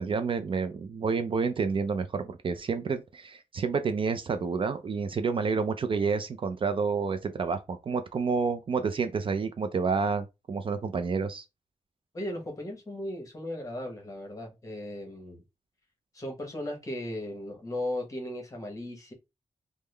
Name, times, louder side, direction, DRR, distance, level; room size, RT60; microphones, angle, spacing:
voice 1, 0.0-11.4, right 5 dB, 45° right, 0.4 m, -29 dB
voice 2, 12.1-15.4 16.1-19.1, left 1 dB, 25° left, 1.2 m, -36 dB
3.5 x 2.1 x 3.3 m
wide cardioid pair, 135°, 13 cm